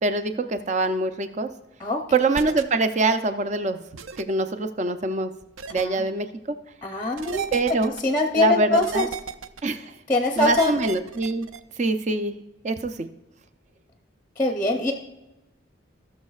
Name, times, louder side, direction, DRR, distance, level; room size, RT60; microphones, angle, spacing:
voice 1, 0.0-1.5 2.1-3.8 4.2-5.3 5.7-6.3 7.5-7.9 8.4-9.1 9.6-9.9 10.4-11.5 11.8-12.3 12.6-13.1, right 3 dB, 35° right, 9 dB, 0.5 m, -24 dB
sound 1, 2.3-2.6 4.0-4.2 5.6-5.9 7.2-8.0 8.8-9.6 10.4-11.6, right 6 dB, 90° right, 0.5 m, -34 dB
voice 2, 5.7-6.0 6.8-7.4 8.0-9.1 10.1-10.8 14.4-14.9, left 2 dB, 10° left, 3 dB, 0.7 m, -23 dB
18.0 x 6.4 x 2.4 m, 0.97 s
head